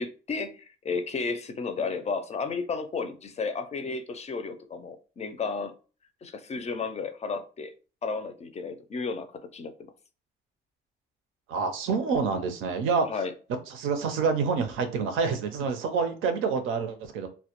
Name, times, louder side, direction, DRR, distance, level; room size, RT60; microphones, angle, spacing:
voice 1, 0.0-5.7 6.2-7.7 8.0-9.7 13.1-13.3, left 4 dB, 35° left, 9 dB, 0.4 m, -33 dB
voice 2, 11.5-13.1 13.7-17.3, right 5 dB, 90° right, 7 dB, 0.5 m, -27 dB
2.1 x 2.0 x 2.8 m, 0.36 s
cardioid pair, 90°, 20 cm